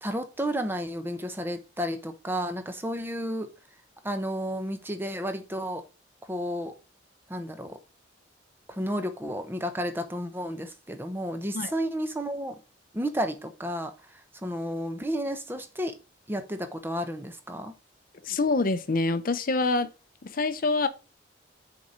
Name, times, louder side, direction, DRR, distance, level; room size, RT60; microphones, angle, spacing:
voice 1, 0.0-3.5 4.0-5.8 6.3-6.7 7.3-7.8 8.7-12.6 12.9-15.9 16.3-17.7, equal, 10° right, 0.8 m, -32 dB
voice 2, 18.2-19.9 20.2-20.9, left 3 dB, 50° left, 0.6 m, -26 dB
6.4 x 4.2 x 5.0 m
head